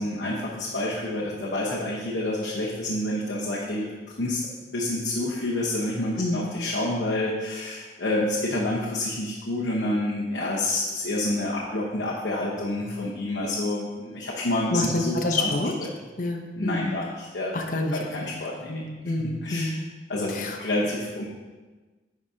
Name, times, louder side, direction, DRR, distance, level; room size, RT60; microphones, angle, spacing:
voice 1, 0.0-3.9 4.2-4.4 4.7-15.5 16.6-17.6 17.9-18.8 19.2-19.7 20.1-21.2, left 1 dB, 75° left, -5 dB, 1.0 m, -28 dB
voice 2, 6.2-6.5 14.7-15.7 16.2-16.9 17.5-18.3 18.7-19.8 20.3-20.6, left 2 dB, 50° left, 2 dB, 0.7 m, -28 dB
10.5 x 5.0 x 2.8 m, 1.3 s
head